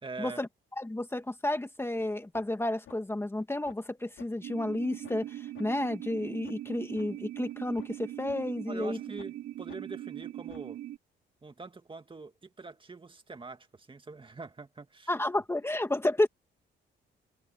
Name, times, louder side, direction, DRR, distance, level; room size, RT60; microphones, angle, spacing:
voice 1, 0.0-0.4 8.7-10.8 11.4-15.1, right 4 dB, 25° right, 2.4 m, -44 dB
voice 2, 0.8-9.0 15.1-16.3, left 1 dB, 10° left, 1.8 m, -31 dB
sound 1, 2.0-2.1 2.3-2.6 2.9-3.0 3.4-3.9 4.2-4.3 4.7-4.8 5.0-5.3 5.6-5.7 6.1-6.2 6.4-6.6 7.0-7.1 7.5-8.4 8.8-8.9 9.2-9.4 9.7-9.8 10.2-10.8, left 11 dB, 80° left, 5.8 m, -53 dB
sound 2, 4.4-11.0, right 13 dB, 85° right, 3.5 m, -41 dB
cardioid pair, 90°, 20 cm